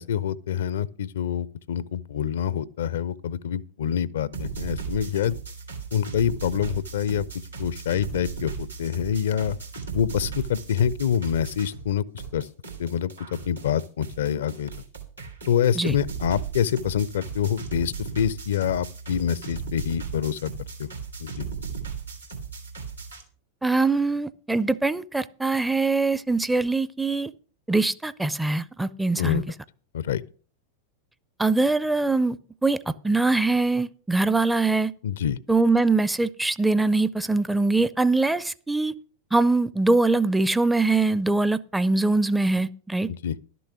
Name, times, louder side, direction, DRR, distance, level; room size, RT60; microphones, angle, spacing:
voice 1, 0.0-5.3 5.9-7.3 7.6-9.6 9.9-12.0 12.3-12.5 12.8-13.1 13.5-14.7 15.5-20.5 20.8-20.9 21.2-21.5 29.2-29.4 29.9-30.2 35.0-35.4 43.1-43.3, left 9 dB, 60° left, 0.4 m, -26 dB
sound 1, 4.3-11.9 12.2-23.2, right 6 dB, 85° right, 2.5 m, -36 dB
voice 2, 23.6-27.3 27.7-29.4 31.4-32.4 32.6-32.8 33.0-34.9 35.5-38.9 39.3-43.1, right 3 dB, 5° right, 0.4 m, -22 dB
11.5 x 6.9 x 6.0 m
figure-of-eight pair, 90°, 0 cm